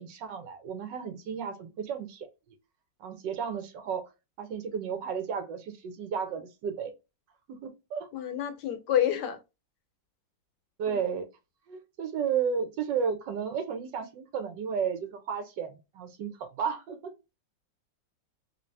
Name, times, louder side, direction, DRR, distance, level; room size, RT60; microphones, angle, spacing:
voice 1, 0.0-2.3 3.0-4.0 4.4-6.9 7.5-8.1 10.8-11.3 11.7-17.1, right 7 dB, 75° right, 1.4 m, -33 dB
voice 2, 8.1-9.4 10.9-11.0, left 10 dB, 70° left, 1.1 m, -28 dB
3.2 x 2.8 x 3.2 m
omnidirectional pair, 2.0 m